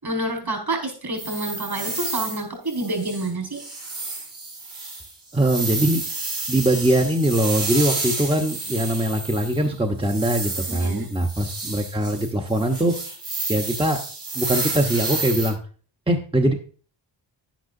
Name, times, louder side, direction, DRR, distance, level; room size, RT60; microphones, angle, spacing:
voice 1, 0.0-3.6 10.7-11.1, right 2 dB, 50° right, 3 dB, 5.5 m, -28 dB
sound 1, 1.2-2.4 2.7-3.3 3.5-9.7 10.0-15.5, right 3 dB, 90° right, 4.9 m, -30 dB
voice 2, 5.3-6.0 6.5-12.9 13.5-14.0 14.3-15.6 16.1-16.5, right 1 dB, 10° right, 2 dB, 1.0 m, -22 dB
11.0 x 10.5 x 2.7 m, 0.41 s
wide cardioid pair, 75°, 46 cm